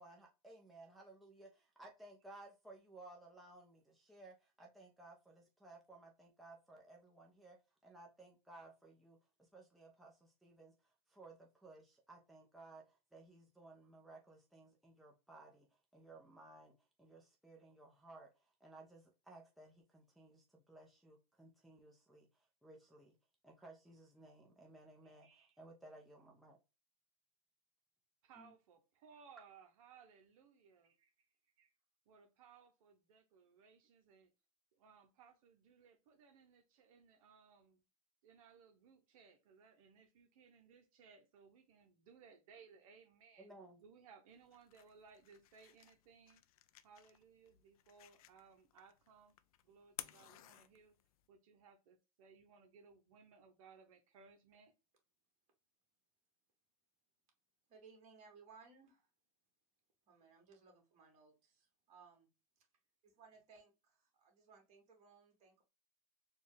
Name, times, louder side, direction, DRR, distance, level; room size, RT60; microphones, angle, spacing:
voice 1, 0.0-7.6 7.8-15.7 15.9-23.2 23.4-26.6 28.4-28.5 43.4-43.8, right 2 dB, ahead, 0.7 m, -59 dB
voice 2, 25.0-25.5 28.2-31.1 31.6-31.7 32.1-34.3 34.7-37.8 38.2-43.5 43.8-46.4 46.8-49.4 49.6-51.0 51.3-54.7, right 6 dB, 70° right, 0.8 m, -63 dB
sound 1, 44.3-51.3, left 13 dB, 75° left, 0.5 m, -57 dB
voice 3, 57.7-59.1 60.1-62.3 62.6-62.7 63.2-65.6, right 5 dB, 40° right, 2.0 m, -63 dB
4.3 x 2.4 x 3.3 m
supercardioid pair, 135°, 19 cm